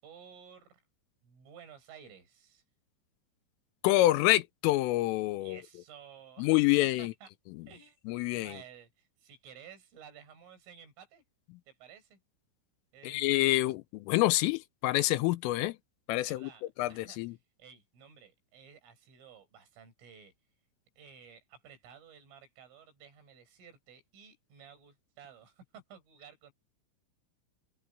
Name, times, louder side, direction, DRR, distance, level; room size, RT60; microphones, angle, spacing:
voice 1, 0.0-0.8 1.2-2.6 5.4-7.3 7.7-11.2 11.7-12.2 12.9-13.2 16.2-20.3 21.0-26.5, right 7 dB, 70° right, 9.6 m, -54 dB
voice 2, 3.8-5.6 6.4-7.1 8.1-8.5 13.0-15.8 16.1-16.5 16.8-17.3, left 17 dB, 80° left, 3.3 m, -27 dB
open air
omnidirectional pair, 5.9 m